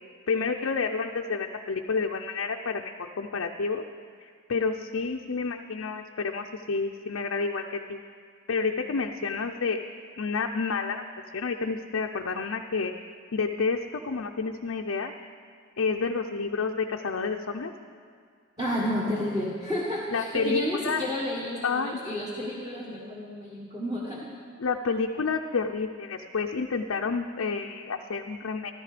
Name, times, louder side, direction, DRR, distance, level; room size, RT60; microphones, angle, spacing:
voice 1, 0.3-3.8 4.2-8.0 8.5-9.8 10.2-11.0 11.3-12.9 13.3-15.1 15.8-17.7 20.1-21.0 21.6-22.2 24.6-28.7, left 4 dB, 65° left, 2 dB, 0.5 m, -29 dB
voice 2, 18.6-24.3, equal, 20° right, -5 dB, 1.5 m, -31 dB
14.5 x 13.0 x 5.0 m, 2.1 s
head